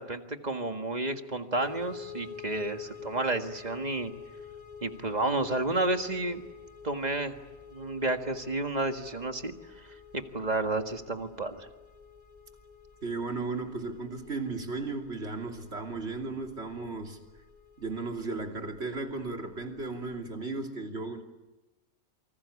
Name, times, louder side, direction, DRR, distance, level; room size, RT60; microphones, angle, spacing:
voice 1, 0.0-4.1 4.8-6.4 6.8-7.4 7.7-9.5 10.1-11.7, right 2 dB, 30° right, 6 dB, 1.8 m, -31 dB
sound 1, 1.6-20.3, left 6 dB, 30° left, 3.4 m, -49 dB
voice 2, 13.0-17.2 17.8-21.2, right 3 dB, 55° right, 3 dB, 3.2 m, -35 dB
28.0 x 25.5 x 8.4 m, 1.1 s
omnidirectional pair, 1.4 m